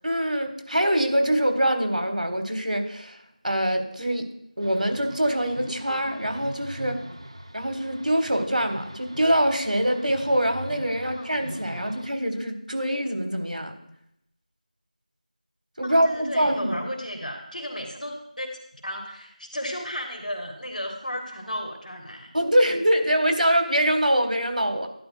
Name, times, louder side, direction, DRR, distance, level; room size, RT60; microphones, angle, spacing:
voice 1, 0.0-3.2 3.4-4.2 4.6-7.0 7.5-13.7 15.8-16.8 22.3-24.9, equal, 85° right, 6 dB, 1.5 m, -24 dB
sound 1, 4.6-12.1, equal, 45° right, 0.6 m, -41 dB
voice 2, 15.8-18.5 18.8-22.3, equal, 85° left, 1 dB, 1.9 m, -34 dB
11.0 x 10.0 x 2.3 m, 0.77 s
figure-of-eight pair, 175°, 4 cm